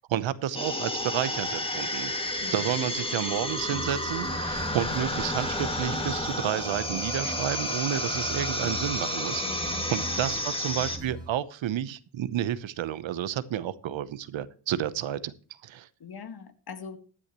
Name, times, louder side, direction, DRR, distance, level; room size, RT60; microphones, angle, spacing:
voice 1, 0.1-2.2 2.5-9.4 9.9-15.3 15.6-15.9, right 11 dB, 75° right, 16 dB, 0.9 m, -31 dB
sound 1, 0.5-11.0, left 1 dB, 10° left, 2.0 m, -31 dB
voice 2, 2.4-2.9 9.4-10.3 16.0-17.0, left 6 dB, 50° left, 10 dB, 1.7 m, -42 dB
sound 2, 3.6-11.3, right 2 dB, 10° right, 3.0 m, -41 dB
15.0 x 9.8 x 3.0 m, 0.41 s
cardioid pair, 75°, 47 cm